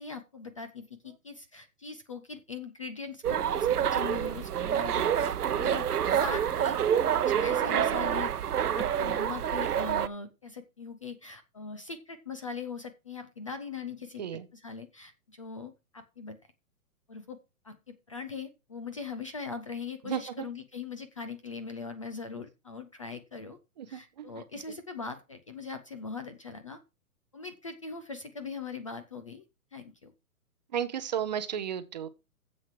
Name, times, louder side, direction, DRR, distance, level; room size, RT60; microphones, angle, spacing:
voice 1, 0.0-6.8 7.3-8.3 8.6-16.4 17.1-17.4 17.6-23.6 23.9-26.8 27.3-29.4 29.7-30.1, left 4 dB, 25° left, 0.5 m, -41 dB
sound 1, 3.2-10.1, right 9 dB, 90° right, 0.9 m, -27 dB
voice 2, 20.1-20.5 23.8-24.3 24.7-24.8 30.7-32.1, right 9 dB, 30° right, 0.7 m, -34 dB
9.1 x 7.6 x 4.6 m
hypercardioid pair, 160°, 45 cm